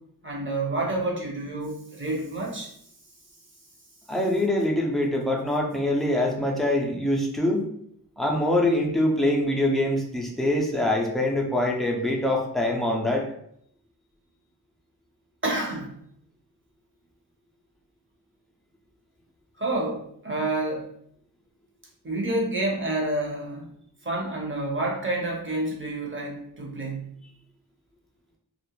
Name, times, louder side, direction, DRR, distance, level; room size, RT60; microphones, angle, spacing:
voice 1, 0.2-2.7 15.4-15.9 19.6-20.9 22.0-23.7 24.0-27.1, right 2 dB, 30° right, -2 dB, 0.9 m, -29 dB
voice 2, 4.1-7.7 8.2-13.3, left 1 dB, ahead, -1 dB, 0.5 m, -24 dB
2.4 x 2.0 x 3.0 m, 0.70 s
cardioid pair, 55°, 40 cm